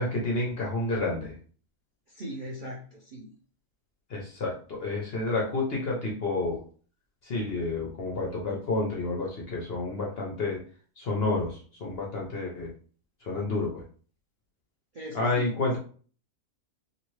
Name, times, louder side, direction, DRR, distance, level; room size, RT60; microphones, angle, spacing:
voice 1, 0.0-1.3 4.1-6.6 7.2-10.6 11.0-12.7 13.2-13.8 15.1-15.8, left 2 dB, 55° left, -1 dB, 0.7 m, -30 dB
voice 2, 2.1-3.4 14.9-15.5, right 1 dB, 60° right, -4 dB, 0.5 m, -39 dB
2.9 x 2.6 x 3.1 m, 0.42 s
omnidirectional pair, 1.6 m